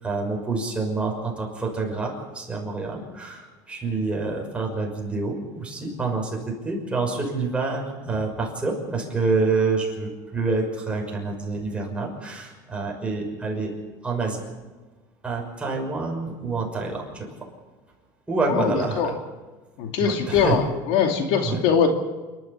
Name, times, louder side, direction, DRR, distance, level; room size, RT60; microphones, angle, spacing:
voice 1, 0.0-13.7 14.0-14.4 15.2-17.3 18.3-19.0 20.0-20.6 21.4-21.6, right 3 dB, 10° right, -1 dB, 6.0 m, -27 dB
voice 2, 18.4-19.1 19.8-21.9, left 7 dB, 70° left, 4 dB, 2.7 m, -22 dB
29.0 x 12.5 x 7.3 m, 1.2 s
cardioid pair, 135°, 10 cm